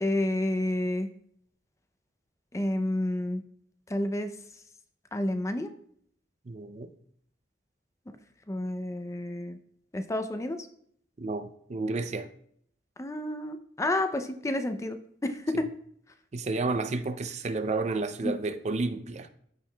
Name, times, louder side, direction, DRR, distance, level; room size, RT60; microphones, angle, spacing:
voice 1, 0.0-1.1 2.5-3.4 3.9-4.3 5.1-5.7 8.5-9.6 9.9-10.6 13.0-15.0 15.2-15.5 18.2-18.3, left 1 dB, 20° left, 0.5 m, -30 dB
voice 2, 6.5-6.9 11.2-12.3 16.3-19.3, right 3 dB, 40° right, 0.5 m, -31 dB
14.0 x 4.7 x 2.3 m
head